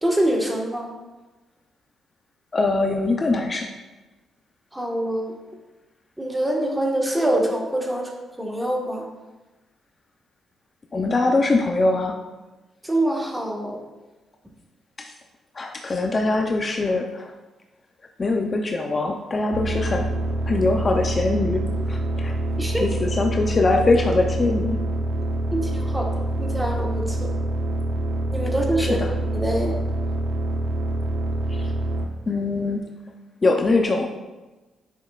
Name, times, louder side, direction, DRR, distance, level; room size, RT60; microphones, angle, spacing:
voice 1, 0.0-0.9 4.7-5.3 6.2-9.0 12.8-13.8 22.6-22.8 25.5-26.1 26.4-27.3 28.3-29.0 29.3-29.7, right 1 dB, 10° right, 0 dB, 1.5 m, -25 dB
voice 2, 2.5-3.7 10.9-12.1 15.0-15.1 15.5-17.3 18.2-20.1 20.5-21.6 21.9-22.3 22.8-24.8 28.8-29.1 31.5-31.7 32.3-32.8 33.4-34.1, left 3 dB, 35° left, 3 dB, 0.6 m, -22 dB
sound 1, 19.5-32.1, right 1 dB, 90° right, 0.7 m, -26 dB
9.1 x 6.3 x 2.5 m, 1.2 s
cardioid pair, 85°, 0 cm